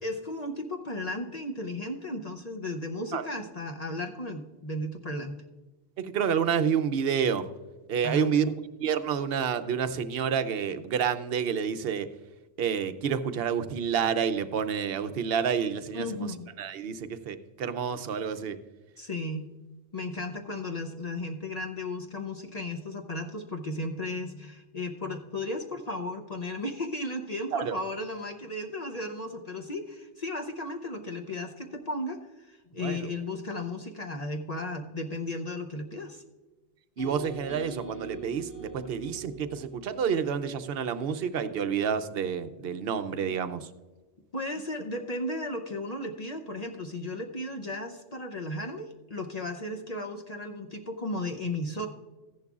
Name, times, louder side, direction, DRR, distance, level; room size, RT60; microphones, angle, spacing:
voice 1, 0.0-5.4 8.0-8.5 15.9-16.5 19.0-19.5 19.9-36.2 44.3-51.9, left 1 dB, 40° left, 3 dB, 0.7 m, -35 dB
voice 2, 6.0-7.5 7.9-12.1 12.6-18.6 27.5-27.8 32.7-33.1 37.0-43.7, right 7 dB, 60° right, 11 dB, 0.8 m, -29 dB
sound 1, 37.0-41.1, right 3 dB, 75° left, 2.6 m, -44 dB
14.5 x 10.5 x 2.4 m, 1.2 s
omnidirectional pair, 1.2 m